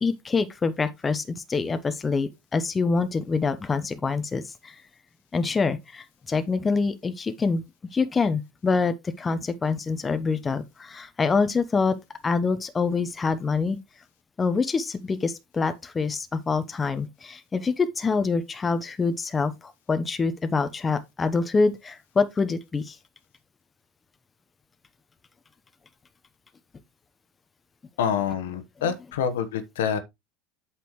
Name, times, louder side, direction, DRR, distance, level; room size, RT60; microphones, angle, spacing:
voice 1, 0.0-4.8 5.3-7.6 7.9-12.0 12.2-13.8 14.4-23.0, left 4 dB, 20° left, 0.8 m, -26 dB
voice 2, 28.0-30.0, left 7 dB, 75° left, 1.2 m, -27 dB
8.3 x 6.1 x 3.0 m
hypercardioid pair, 80°, 0 cm